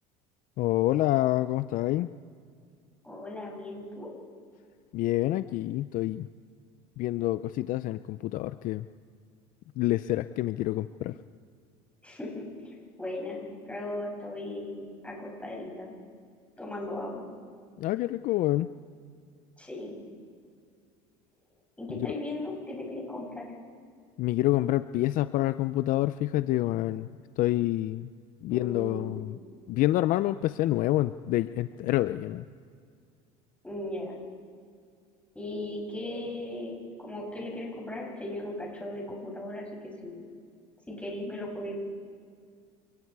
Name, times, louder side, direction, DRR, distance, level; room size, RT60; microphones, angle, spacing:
voice 1, 0.6-2.1 4.9-6.3 7.0-8.9 9.8-11.2 17.8-18.7 22.0-22.1 24.2-27.1 27.4-28.1 28.4-29.4 29.7-32.5, left 15 dB, 55° left, 13 dB, 0.5 m, -27 dB
voice 2, 3.0-4.1 12.0-15.9 16.6-17.2 19.6-20.0 21.8-23.5 28.5-29.2 33.6-34.2 35.3-40.3 40.9-41.8, left 1 dB, 10° left, -3 dB, 7.3 m, -37 dB
28.0 x 20.0 x 4.8 m, 2.2 s
supercardioid pair, 110°, 16 cm